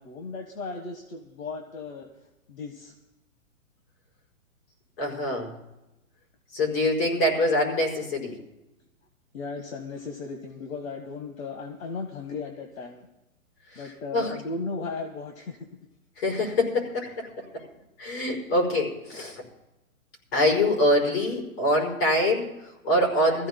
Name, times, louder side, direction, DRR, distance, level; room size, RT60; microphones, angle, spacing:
voice 1, 0.0-2.1 2.5-2.9 9.3-13.1 13.8-15.6 18.5-18.6 19.1-19.3, left 4 dB, 75° left, 4 dB, 1.7 m, -36 dB
voice 2, 5.0-5.5 6.5-8.4 13.7-13.8 14.1-14.3 16.2-17.7 18.0-19.4 20.3-23.5, left 1 dB, 45° left, 1 dB, 5.4 m, -25 dB
23.0 x 15.0 x 2.3 m, 0.95 s
hypercardioid pair, 140°, 41 cm